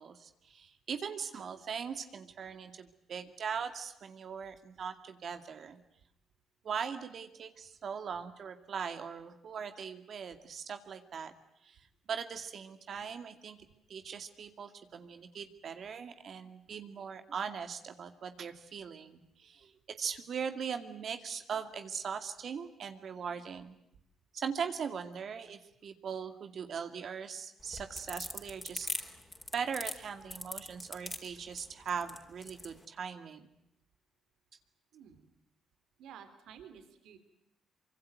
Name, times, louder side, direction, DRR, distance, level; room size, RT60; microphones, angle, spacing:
voice 1, 0.0-5.8 6.6-11.3 11.6-11.8 12.1-13.6 13.9-23.8 24.3-28.9 29.5-33.5, right 6 dB, 55° right, 8 dB, 2.3 m, -40 dB
sound 1, 27.6-32.7, left 2 dB, 15° left, 4.4 m, -40 dB
voice 2, 34.9-35.3 36.0-37.2, right 8 dB, 80° right, 8 dB, 3.4 m, -52 dB
25.0 x 23.5 x 9.3 m, 0.79 s
cardioid pair, 90°, 0 cm